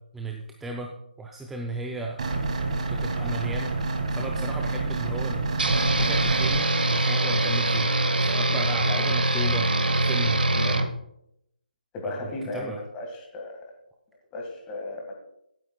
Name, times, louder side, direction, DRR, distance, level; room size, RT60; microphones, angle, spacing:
voice 1, 0.1-2.2 2.9-3.8 4.2-5.5 5.9-7.9 8.2-9.7 10.0-10.8 12.0-12.8, right 2 dB, 5° right, 0 dB, 0.4 m, -35 dB
sound 1, 2.2-6.6, right 3 dB, 45° right, 1.7 m, -28 dB
sound 2, 5.6-10.9, right 2 dB, 70° right, 1.0 m, -23 dB
voice 2, 11.9-13.6 14.3-15.1, left 2 dB, 15° left, 1 dB, 1.7 m, -35 dB
16.0 x 8.8 x 2.3 m, 0.79 s
figure-of-eight pair, 155°, 5 cm